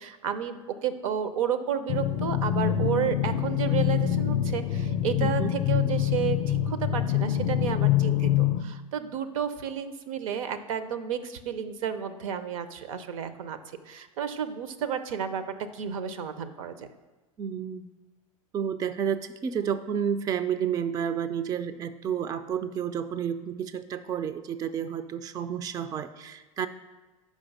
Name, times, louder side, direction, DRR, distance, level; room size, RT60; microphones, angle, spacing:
voice 1, 0.0-13.6 13.9-15.4 15.7-16.9, right 8 dB, 70° right, 11 dB, 0.7 m, -32 dB
sound 1, 1.9-8.6, left 11 dB, 50° left, 0.5 m, -25 dB
voice 2, 5.2-5.5 17.4-17.9 18.5-26.7, right 8 dB, 20° right, 12 dB, 0.3 m, -30 dB
5.6 x 5.2 x 6.5 m, 1.2 s
hypercardioid pair, 100°, 18 cm